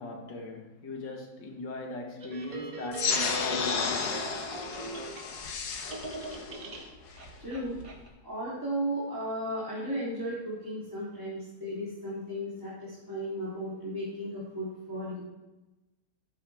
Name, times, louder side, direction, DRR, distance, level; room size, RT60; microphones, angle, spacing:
voice 1, 0.0-4.2, left 2 dB, 80° left, 2.3 m, -39 dB
sound 1, 2.2-5.6 5.9-8.1, right 1 dB, 55° right, 2.1 m, -41 dB
sound 2, 2.9-7.9, left 5 dB, 65° left, 1.6 m, -33 dB
voice 2, 7.4-7.8 8.2-15.2, equal, 10° right, 3.2 m, -35 dB
12.5 x 9.4 x 3.5 m
omnidirectional pair, 1.9 m